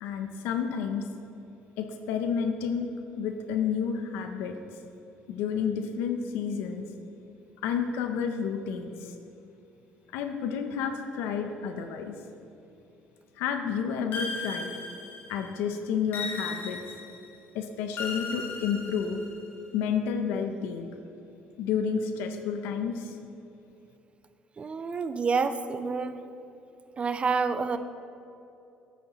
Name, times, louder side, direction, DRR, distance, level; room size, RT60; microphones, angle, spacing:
voice 1, 0.0-1.1 1.8-2.9 3.2-4.6 5.3-6.9 7.6-9.1 10.1-12.1 13.4-14.7 15.3-16.8 17.5-19.2 19.7-20.9 21.6-23.2, left 7 dB, 85° left, 6 dB, 0.6 m, -30 dB
sound 1, 14.1-15.5 16.1-17.3 18.0-19.5, left 3 dB, 65° left, 1.5 m, -36 dB
voice 2, 24.6-26.2 27.0-27.8, right 5 dB, 30° right, 11 dB, 0.5 m, -28 dB
9.3 x 8.4 x 3.0 m, 2.8 s
supercardioid pair, 90°, 4 cm